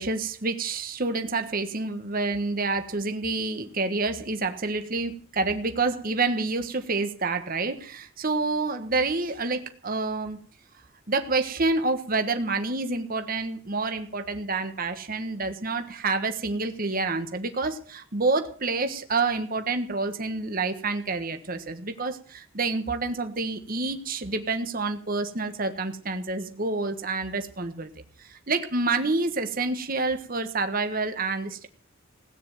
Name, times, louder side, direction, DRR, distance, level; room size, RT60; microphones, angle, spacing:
voice 1, 0.0-10.4 11.1-27.9 28.2-31.7, right 3 dB, 45° right, 7 dB, 1.5 m, -28 dB
17.0 x 9.8 x 7.7 m, 0.43 s
head